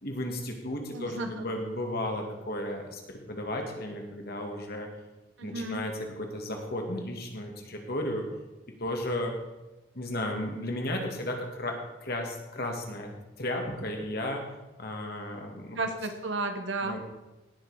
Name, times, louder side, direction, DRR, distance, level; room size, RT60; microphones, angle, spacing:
voice 1, 0.0-4.9 5.4-8.2 8.8-9.3 9.9-13.1 13.4-14.4 14.8-15.8 16.8-17.0, left 1 dB, 50° left, 2 dB, 2.1 m, -34 dB
voice 2, 0.9-1.5 5.4-5.8 15.7-17.0, right 2 dB, 65° right, 7 dB, 1.3 m, -33 dB
18.0 x 6.7 x 5.0 m, 1.1 s
head